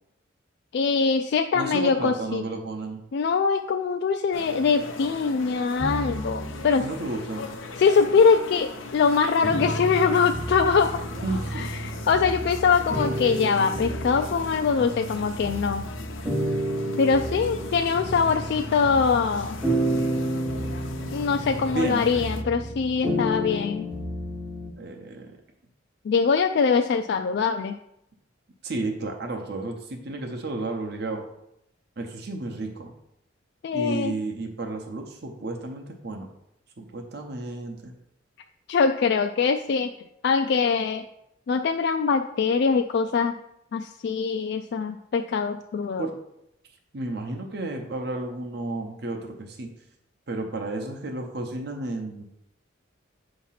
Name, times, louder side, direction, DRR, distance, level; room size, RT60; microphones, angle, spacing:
voice 1, 0.7-2.4 3.1-6.9 7.8-11.0 11.5-15.9 17.0-19.6 21.1-23.9 26.0-27.8 33.6-34.1 38.7-39.9 40.2-41.0 41.5-43.4 43.7-46.1, left 5 dB, 60° left, 5 dB, 0.3 m, -23 dB
voice 2, 1.5-3.0 6.8-7.4 11.1-11.7 21.7-22.0 24.8-25.3 28.6-31.2 32.0-32.9 33.7-36.3 36.8-37.9 46.0-46.1 46.9-49.7 50.3-52.2, right 2 dB, 55° right, 2 dB, 0.8 m, -32 dB
sound 1, 4.3-22.4, left 4 dB, 85° left, 0.7 m, -39 dB
sound 2, 5.8-7.5 8.1-24.7, right 1 dB, 5° right, 0.6 m, -31 dB
8.3 x 2.9 x 5.7 m, 0.81 s
head